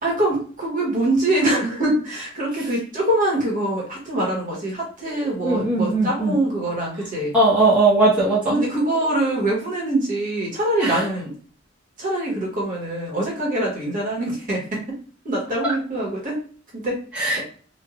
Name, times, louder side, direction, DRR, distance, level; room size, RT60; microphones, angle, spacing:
voice 1, 0.0-7.3 8.5-11.4 12.0-15.0 15.2-16.4 16.7-17.0 17.4-17.5, right 1 dB, 45° right, -3 dB, 1.1 m, -24 dB
voice 2, 5.4-6.4 7.3-8.5 10.8-11.0 15.6-15.7 17.1-17.4, right 2 dB, 5° right, -9 dB, 0.9 m, -19 dB
3.1 x 2.3 x 2.3 m, 0.43 s
head